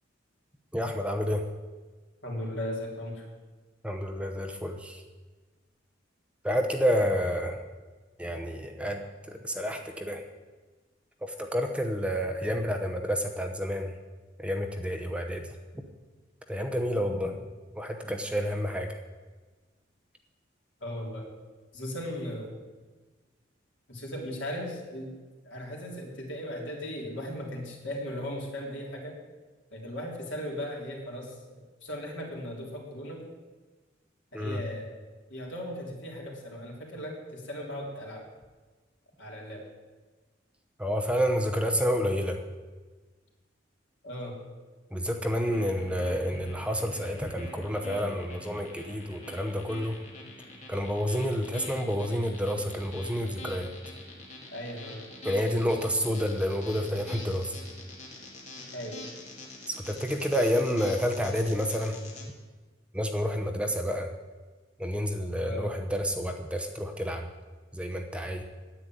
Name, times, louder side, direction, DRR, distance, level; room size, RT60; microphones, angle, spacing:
voice 1, 0.7-1.4 3.8-5.0 6.4-7.6 8.2-9.0 9.3-10.2 11.2-13.9 14.4-15.4 16.5-17.4 17.7-19.0 34.3-34.6 40.8-42.4 44.9-50.0 50.7-53.7 55.2-57.5 59.7-62.0 62.9-64.1 64.8-67.3 67.7-68.4, equal, 5° right, 4 dB, 0.8 m, -29 dB
voice 2, 2.2-3.2 20.8-21.3 21.7-22.5 23.9-25.2 25.4-29.2 29.7-33.2 34.3-34.9 35.3-38.2 39.2-39.6 44.0-44.3 54.5-55.0 58.7-59.0 65.4-65.7, left 1 dB, 70° left, -2 dB, 3.5 m, -37 dB
sound 1, 45.3-62.2, left 2 dB, 40° left, 2.6 m, -45 dB
10.0 x 8.6 x 9.2 m, 1.3 s
head